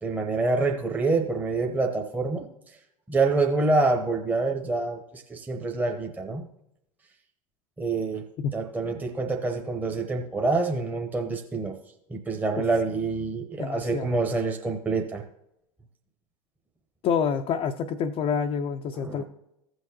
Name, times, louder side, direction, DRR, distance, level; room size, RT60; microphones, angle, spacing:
voice 1, 0.0-2.5 3.1-6.5 7.8-8.2 8.5-11.7 12.1-15.2 19.0-19.2, right 3 dB, 10° right, 2 dB, 0.9 m, -26 dB
voice 2, 13.6-14.1 17.0-19.2, left 6 dB, 35° left, 4 dB, 0.5 m, -27 dB
15.0 x 6.4 x 2.9 m, 0.84 s
figure-of-eight pair, 85°, 17 cm